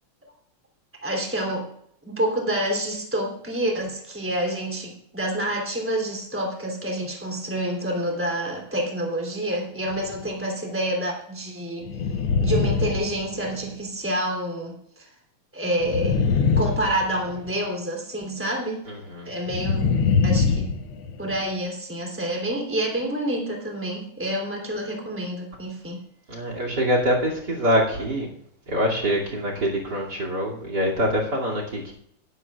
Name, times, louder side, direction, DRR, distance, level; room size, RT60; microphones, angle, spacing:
voice 1, 1.0-1.7 2.0-11.9 12.4-15.1 15.5-16.2 16.6-18.8 19.2-20.7 21.2-26.0, right 1 dB, 5° right, 0 dB, 2.9 m, -28 dB
sound 1, 9.9-10.3 11.8-13.7 15.8-17.5 19.5-21.4, left 5 dB, 75° left, 1.9 m, -23 dB
voice 2, 18.9-19.3 26.3-28.3 28.7-31.9, equal, 50° right, 0 dB, 3.2 m, -24 dB
20.0 x 11.0 x 2.4 m, 0.70 s
omnidirectional pair, 2.4 m